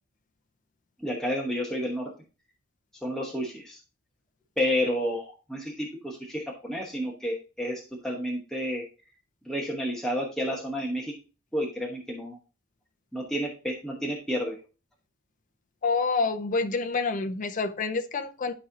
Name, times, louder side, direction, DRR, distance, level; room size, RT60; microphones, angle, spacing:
voice 1, 1.0-2.1 3.0-3.8 4.6-8.8 9.4-11.1 11.5-12.4 13.1-14.6, equal, ahead, 1.1 m, -30 dB
voice 2, 15.8-18.5, left 4 dB, 35° left, 0.5 m, -27 dB
12.0 x 4.2 x 2.8 m
head